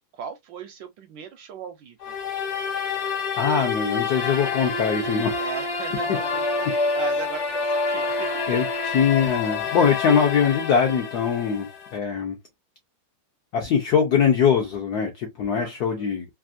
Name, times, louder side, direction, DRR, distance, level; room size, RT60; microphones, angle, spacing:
voice 1, 0.1-2.1 5.4-8.4 15.6-16.1, right 7 dB, 75° right, 1.1 m, -38 dB
sound 1, 2.0-12.0, left 4 dB, 50° left, 1.4 m, -27 dB
voice 2, 2.9-5.5 8.5-11.7 11.9-12.4 13.5-16.3, left 7 dB, 70° left, 0.9 m, -22 dB
3.4 x 2.4 x 2.4 m
omnidirectional pair, 2.4 m